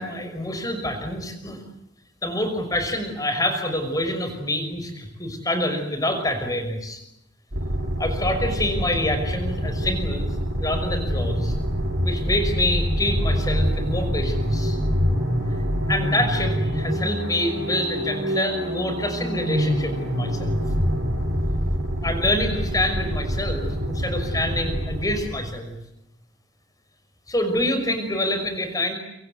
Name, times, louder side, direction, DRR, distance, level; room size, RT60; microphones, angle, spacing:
voice 1, 0.0-1.6 2.2-7.0 8.0-10.3 10.6-11.5 12.0-14.8 15.9-20.6 22.0-25.8 27.3-28.9, left 1 dB, 20° left, 7 dB, 5.9 m, -26 dB
sound 1, 7.5-25.6, equal, 75° right, 7.4 m, -25 dB
28.0 x 25.5 x 8.2 m, 0.83 s
head